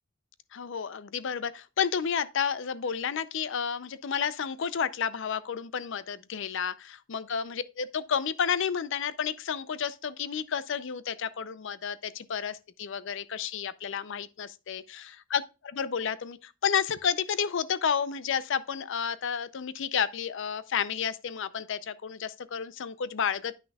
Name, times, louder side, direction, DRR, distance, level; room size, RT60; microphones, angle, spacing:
voice 1, 0.5-23.6, left 7 dB, 65° left, 0.5 m, -31 dB
10.0 x 6.0 x 2.3 m
head